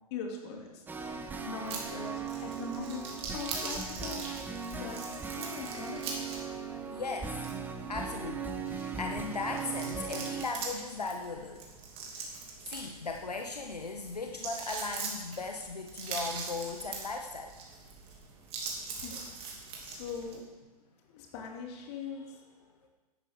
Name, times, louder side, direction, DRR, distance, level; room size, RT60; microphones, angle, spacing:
voice 1, 0.1-0.8 1.4-3.1 3.3-4.2 4.8-5.0 5.3-6.3 18.9-19.2 19.5-20.4 21.0-22.8, left 5 dB, 45° left, 1 dB, 2.6 m, -42 dB
sound 1, 0.9-10.5, right 5 dB, 10° right, 0.9 m, -38 dB
sound 2, 1.6-20.4, right 4 dB, 30° right, 2.6 m, -43 dB
voice 2, 6.9-7.3 7.9-11.6 12.1-12.2 12.7-17.5, left 3 dB, 80° left, 3 dB, 1.1 m, -37 dB
14.5 x 11.0 x 3.6 m, 1.2 s
figure-of-eight pair, 110°, 20 cm